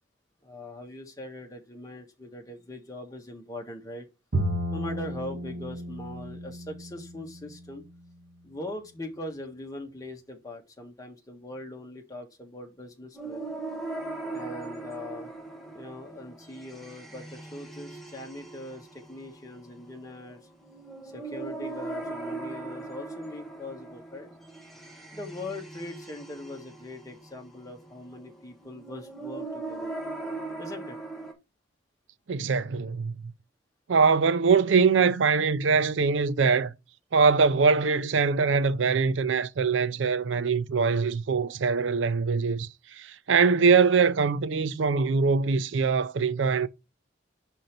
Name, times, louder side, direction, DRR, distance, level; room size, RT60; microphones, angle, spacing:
voice 1, 0.4-4.1 4.7-7.8 8.4-13.5 14.3-15.3 15.7-20.4 21.1-24.3 25.1-29.9 30.6-31.0, left 1 dB, 20° left, 1.5 m, -41 dB
Bowed string instrument, 4.3-7.7, right 1 dB, 55° right, 0.9 m, -33 dB
sound 1, 13.1-31.3, right 2 dB, ahead, 1.2 m, -40 dB
voice 2, 32.3-33.3 33.9-36.7 37.1-46.7, right 5 dB, 90° right, 0.5 m, -23 dB
5.3 x 4.5 x 5.2 m
head